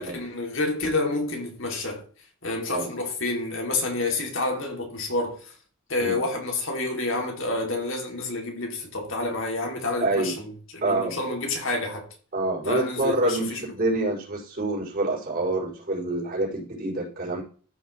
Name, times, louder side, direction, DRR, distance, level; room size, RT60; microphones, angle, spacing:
voice 1, 0.0-2.0 2.4-5.5 5.9-12.1 12.6-13.7, left 2 dB, 65° left, 2.6 m, -29 dB
voice 2, 10.0-10.4 10.8-11.2 12.3-17.4, right 2 dB, 40° right, 5.2 m, -27 dB
14.0 x 6.0 x 3.1 m
head